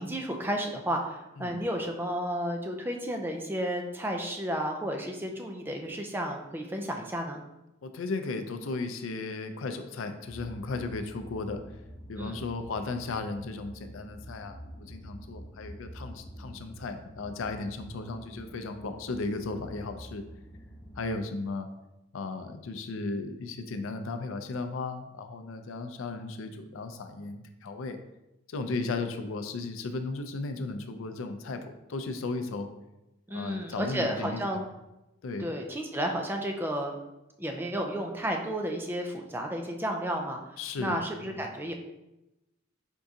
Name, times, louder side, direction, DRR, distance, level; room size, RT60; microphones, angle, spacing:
voice 1, 0.0-7.4 12.2-12.4 33.3-34.6 35.4-37.0 37.4-41.7, equal, 10° right, 3 dB, 0.4 m, -32 dB
voice 2, 7.8-11.6 12.1-20.2 21.0-21.7 22.1-28.0 28.5-32.7 33.3-34.4 35.2-35.5 40.6-41.4, left 3 dB, 80° left, 8 dB, 0.4 m, -35 dB
sound 1, 10.2-21.1, equal, 30° left, 0.7 m, -47 dB
4.5 x 3.6 x 2.7 m, 0.95 s
head